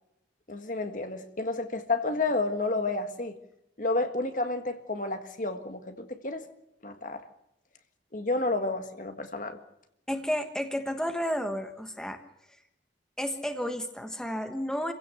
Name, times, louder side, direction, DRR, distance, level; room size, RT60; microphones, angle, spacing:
voice 1, 0.5-3.4 3.8-6.4 6.8-7.2 8.1-9.6, left 2 dB, 45° left, 7 dB, 1.8 m, -30 dB
voice 2, 10.1-12.2 12.5-12.6 13.2-14.9, equal, 5° left, 6 dB, 1.3 m, -32 dB
27.0 x 16.0 x 7.0 m, 0.84 s
head